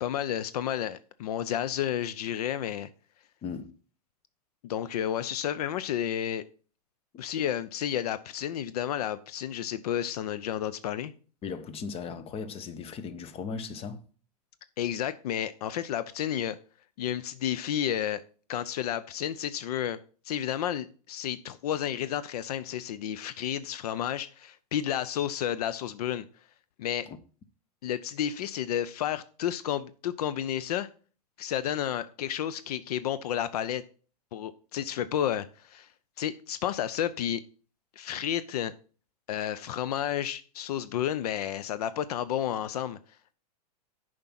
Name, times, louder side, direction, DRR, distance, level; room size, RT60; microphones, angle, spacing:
voice 1, 0.0-2.9 4.6-6.4 7.2-11.1 14.8-16.6 17.0-18.2 18.5-20.0 20.2-26.3 26.8-27.1 27.8-30.9 31.4-33.8 34.3-35.9 36.2-37.4 38.0-38.7 39.3-43.0, left 10 dB, 70° left, 0.5 m, -31 dB
voice 2, 3.4-3.7 11.4-14.0 27.1-27.2, left 5 dB, 30° left, 0.9 m, -37 dB
6.8 x 5.1 x 5.8 m
hypercardioid pair, 115°, 20 cm